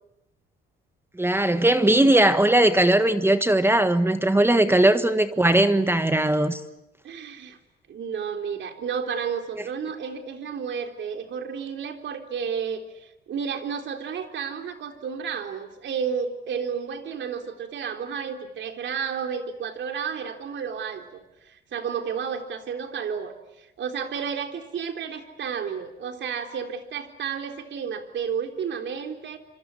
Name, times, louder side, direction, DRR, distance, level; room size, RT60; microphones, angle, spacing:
voice 1, 1.2-6.6, right 1 dB, 10° right, 1.5 m, -19 dB
voice 2, 7.0-7.6 7.9-29.4, right 6 dB, 65° right, 3.8 m, -32 dB
26.5 x 26.0 x 8.5 m
cardioid pair, 90°, 20 cm